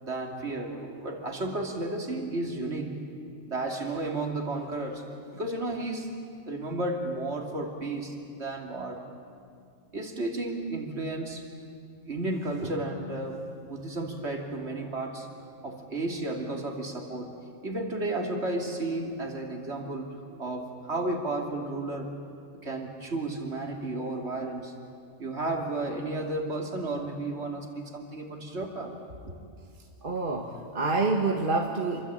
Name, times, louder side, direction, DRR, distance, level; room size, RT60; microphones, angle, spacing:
voice 1, 0.0-3.1 3.5-5.1 5.3-6.1 6.5-9.0 9.9-11.5 12.1-15.3 15.6-17.3 17.6-22.1 22.5-24.7 25.2-28.9 29.3-29.4, right 2 dB, 60° right, 2 dB, 3.0 m, -33 dB
voice 2, 30.0-32.0, right 3 dB, 45° right, 1 dB, 1.8 m, -27 dB
27.5 x 24.0 x 8.9 m, 2.3 s
omnidirectional pair, 1.3 m